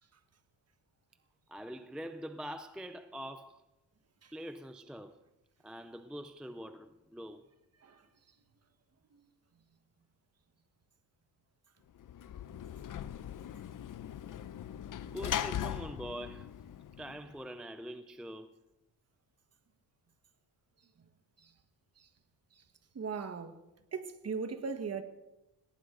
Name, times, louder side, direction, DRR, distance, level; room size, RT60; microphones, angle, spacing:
voice 1, 1.5-3.6 4.3-5.2 5.6-7.5 15.0-16.5 17.0-18.5, equal, ahead, 0.5 m, -44 dB
Sliding door / Slam, 12.0-17.4, left 10 dB, 50° left, 0.7 m, -40 dB
voice 2, 22.9-23.6 23.9-25.0, right 5 dB, 35° right, 1.4 m, -38 dB
18.0 x 18.0 x 3.9 m
cardioid pair, 115°, 42 cm